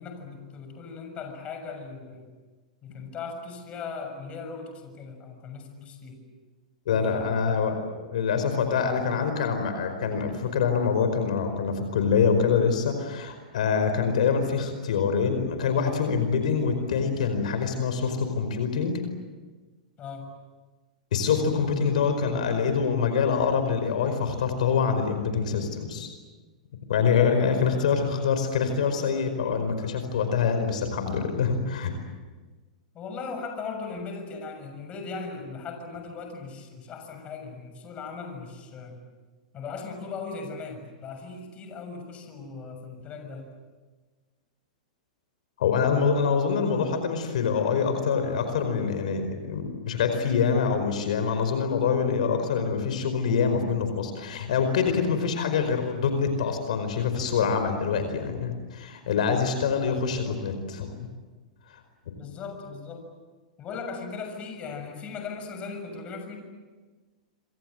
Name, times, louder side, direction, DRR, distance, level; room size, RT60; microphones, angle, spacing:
voice 1, 0.0-2.3 2.8-6.2 6.9-7.6 20.0-20.3 27.2-27.9 32.9-39.0 39.5-43.5 55.4-55.6 59.8-60.0 60.2-60.4 62.1-63.2 63.6-66.4, left 4 dB, 30° left, 6 dB, 6.7 m, -38 dB
voice 2, 6.8-19.0 21.1-26.1 26.9-31.9 45.6-60.9 61.7-61.8, left 6 dB, 75° left, 7 dB, 4.9 m, -25 dB
27.0 x 25.5 x 7.8 m, 1.3 s
hypercardioid pair, 120°, 4 cm